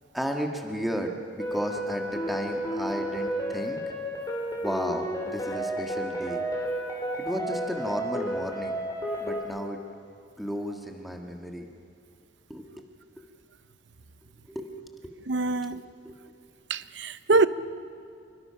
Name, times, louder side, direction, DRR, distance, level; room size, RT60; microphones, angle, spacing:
voice 1, 0.1-3.8 4.6-6.4 7.2-8.8 9.2-9.8 10.4-11.7 12.5-12.8 14.5-14.8 15.5-16.2, equal, ahead, 1.7 m, -34 dB
sound 1, 1.4-9.4, equal, 20° left, 3.0 m, -32 dB
voice 2, 15.3-15.8 16.7-17.5, right 3 dB, 60° right, 0.7 m, -24 dB
27.0 x 23.5 x 5.8 m
head